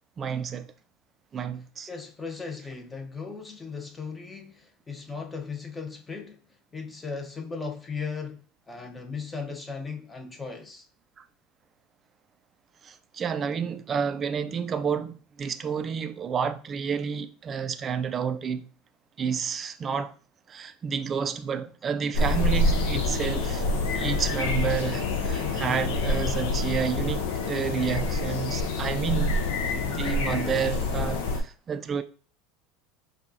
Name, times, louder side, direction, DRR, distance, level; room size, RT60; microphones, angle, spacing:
voice 1, 0.2-0.7 1.3-1.9 11.2-11.3 12.8-18.7 19.2-20.1 20.5-23.6 23.9-29.4 29.7-32.0, right 7 dB, 35° right, 0.4 m, -30 dB
voice 2, 1.9-6.4 6.7-10.9, left 5 dB, 20° left, 0.8 m, -37 dB
sound 1, 22.1-31.4, left 2 dB, 70° left, 0.6 m, -27 dB
4.5 x 2.3 x 2.7 m
hypercardioid pair, 85°, 0 cm